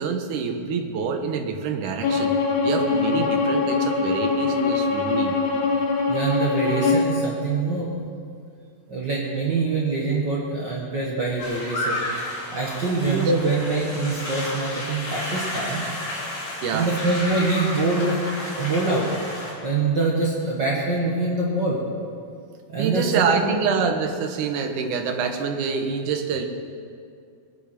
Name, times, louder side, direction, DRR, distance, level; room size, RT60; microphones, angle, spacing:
voice 1, 0.0-2.4 2.6-5.4 13.0-13.3 16.6-16.9 22.8-26.5, right 6 dB, 75° right, 5 dB, 2.5 m, -26 dB
Bowed string instrument, 2.0-7.1, left 4 dB, 65° left, 2.8 m, -22 dB
voice 2, 6.1-7.9 8.9-12.0 12.5-15.8 16.7-18.2 18.6-19.1 19.6-21.8 22.7-23.0 23.3-23.5, right 3 dB, 45° right, -4 dB, 1.6 m, -24 dB
sound 1, 11.4-19.5, left 1 dB, 45° left, 3.8 m, -32 dB
20.5 x 9.5 x 5.9 m, 2.3 s
omnidirectional pair, 3.8 m